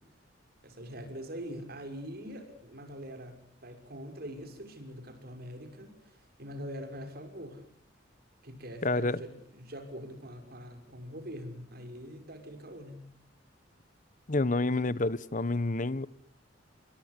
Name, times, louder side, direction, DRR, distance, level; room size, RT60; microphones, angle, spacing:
voice 1, 0.6-7.7 8.4-13.1, equal, 55° right, 5.9 m, -43 dB
voice 2, 8.8-9.2 14.3-16.1, left 2 dB, 40° left, 1.0 m, -28 dB
29.0 x 23.5 x 8.2 m
head